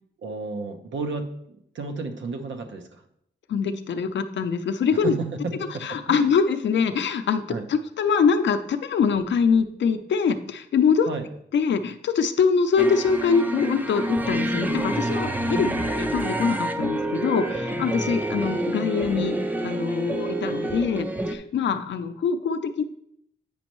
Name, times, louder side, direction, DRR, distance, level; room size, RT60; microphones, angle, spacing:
voice 1, 0.2-3.0 4.9-6.3 7.5-7.7 11.1-11.2 15.5-15.9, right 3 dB, 80° right, 6 dB, 0.8 m, -32 dB
voice 2, 3.5-5.1 5.8-7.4 7.7-11.1 11.5-19.4 19.6-22.8, left 6 dB, 70° left, 9 dB, 0.5 m, -24 dB
sound 1, 12.8-21.4, right 1 dB, 10° right, 0.4 m, -28 dB
8.6 x 5.2 x 3.0 m, 0.73 s
wide cardioid pair, 145°, 19 cm